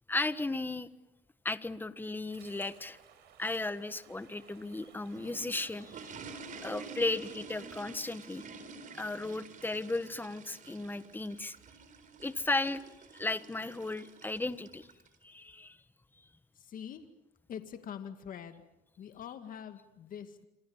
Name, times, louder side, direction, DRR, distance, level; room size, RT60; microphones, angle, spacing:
voice 1, 0.1-0.9 1.4-3.0 3.4-6.1 6.6-8.4 9.0-11.5 12.2-12.8 13.1-14.9 15.2-15.8, left 2 dB, 10° left, 13 dB, 1.3 m, -35 dB
sound 1, 2.3-7.3, right 8 dB, 85° right, 4.9 m, -59 dB
sound 2, 5.0-15.2, right 4 dB, 50° right, 4.1 m, -49 dB
voice 2, 16.5-17.0 17.5-18.6 19.0-20.5, left 8 dB, 55° left, 8 dB, 2.2 m, -44 dB
27.0 x 26.0 x 7.3 m, 0.87 s
cardioid pair, 110°, 17 cm